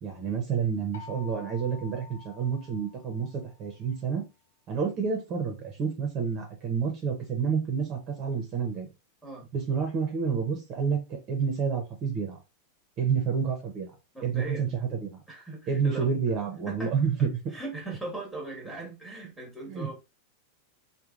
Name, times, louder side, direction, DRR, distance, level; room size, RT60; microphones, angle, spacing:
voice 1, 0.0-4.2 4.7-8.9 9.5-12.4 13.0-13.9 14.2-15.2 15.7-17.3 19.7-19.9, right 6 dB, 35° right, 0.7 m, -29 dB
sound 1, 0.9-3.7, left 6 dB, 90° left, 0.6 m, -49 dB
voice 2, 14.1-14.8 15.3-16.1 16.7-16.9 17.5-19.9, right 2 dB, ahead, 1.2 m, -39 dB
3.1 x 2.2 x 2.4 m
supercardioid pair, 145°, 0 cm